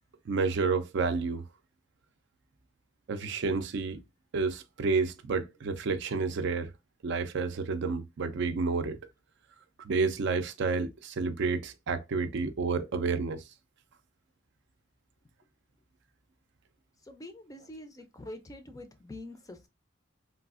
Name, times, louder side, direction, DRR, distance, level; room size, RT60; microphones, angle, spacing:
voice 1, 0.3-1.4 3.1-4.0 4.3-6.7 7.0-9.0 9.8-13.4, right 4 dB, 60° right, 0.4 m, -30 dB
voice 2, 17.1-19.7, left 1 dB, 15° left, 0.4 m, -45 dB
3.3 x 2.4 x 2.3 m
head